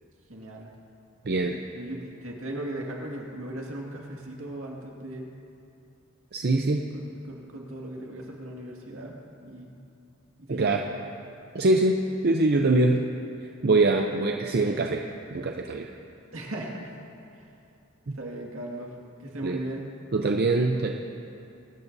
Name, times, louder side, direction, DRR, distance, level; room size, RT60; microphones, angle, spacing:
voice 1, 0.3-0.7 1.7-5.3 6.4-9.8 10.4-10.9 16.3-17.0 17.4-17.5 18.1-18.9 19.2-19.9, right 1 dB, 75° right, -1 dB, 2.0 m, -38 dB
voice 2, 1.2-1.6 6.3-6.9 10.5-10.8 11.5-13.0 13.6-15.9 18.1-18.2 19.4-19.6 20.1-20.9, right 2 dB, 50° right, 3 dB, 0.6 m, -23 dB
23.5 x 13.0 x 2.7 m, 2.6 s
head